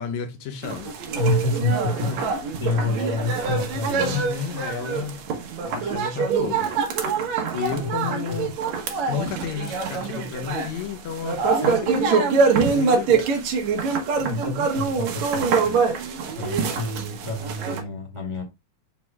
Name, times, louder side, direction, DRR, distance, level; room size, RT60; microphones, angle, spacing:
voice 1, 0.0-1.0 1.9-2.2 4.0-5.2 5.6-6.8 7.5-8.6 9.1-12.2 12.7-13.3, left 7 dB, 70° left, 2.0 m, -32 dB
sound 1, 0.6-17.8, right 5 dB, 65° right, 2.3 m, -24 dB
voice 2, 1.1-2.3 2.6-4.2 7.7-8.4 14.2-15.8 16.3-18.4, left 2 dB, 10° right, 1.6 m, -28 dB
8.4 x 6.1 x 2.3 m
omnidirectional pair, 3.5 m